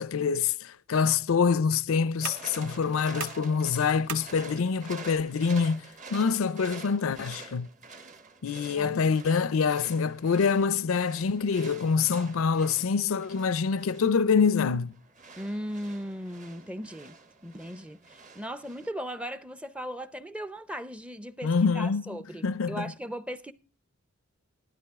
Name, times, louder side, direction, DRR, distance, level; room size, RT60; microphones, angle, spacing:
voice 1, 0.0-5.8 6.1-7.7 8.4-14.9 21.4-22.1 22.4-22.9, left 5 dB, 80° left, 0.5 m, -25 dB
sound 1, 0.7-7.7, right 5 dB, 65° right, 2.0 m, -46 dB
sound 2, 2.2-18.9, right 4 dB, 35° right, 1.0 m, -48 dB
voice 2, 15.4-23.5, equal, 5° right, 0.5 m, -38 dB
12.5 x 12.5 x 3.5 m
head